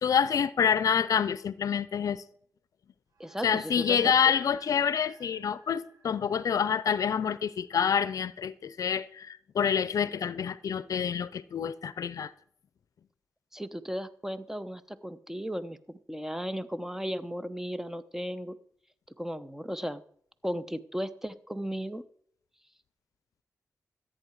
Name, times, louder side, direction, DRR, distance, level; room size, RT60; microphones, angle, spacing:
voice 1, 0.0-2.2 3.4-12.3, left 7 dB, 75° left, 0.5 m, -27 dB
sound 1, 3.1-7.8, right 2 dB, 85° right, 2.0 m, -57 dB
voice 2, 3.2-4.1 13.5-18.6 19.2-20.0 20.4-22.0, equal, 5° right, 0.9 m, -35 dB
13.5 x 8.7 x 4.7 m
cardioid pair, 55°, 6 cm